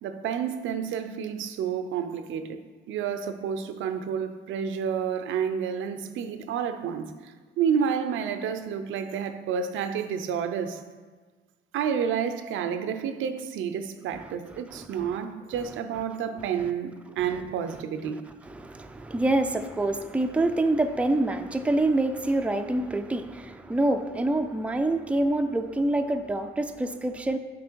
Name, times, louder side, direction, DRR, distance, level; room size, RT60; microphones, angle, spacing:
voice 1, 0.0-7.3 7.6-10.8 11.7-18.2, right 7 dB, 80° right, 9 dB, 0.6 m, -30 dB
voice 2, 14.5-15.2 18.4-27.4, right 2 dB, 5° right, 6 dB, 0.4 m, -26 dB
6.1 x 5.8 x 4.5 m, 1.4 s
cardioid pair, 90°, 20 cm